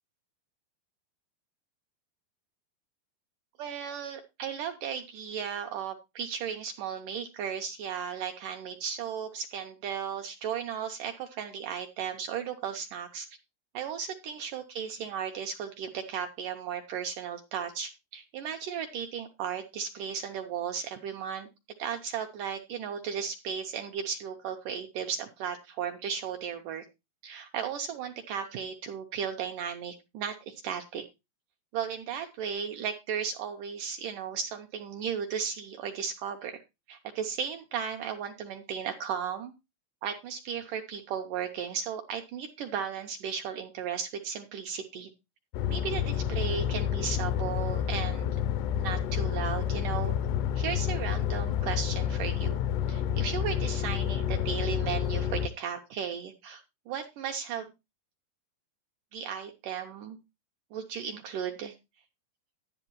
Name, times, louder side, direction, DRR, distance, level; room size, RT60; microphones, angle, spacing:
voice 1, 3.6-13.3 13.7-21.5 21.8-26.9 27.2-31.1 31.7-36.6 36.9-39.5 40.0-45.1 45.7-48.3 48.8-50.1 50.6-52.6 52.9-57.7 59.1-60.2 60.7-61.7, right 7 dB, 75° right, 5 dB, 1.9 m, -35 dB
sound 1, 45.5-55.5, left 9 dB, 85° left, 2.7 m, -29 dB
11.0 x 10.5 x 3.0 m, 0.25 s
omnidirectional pair, 4.6 m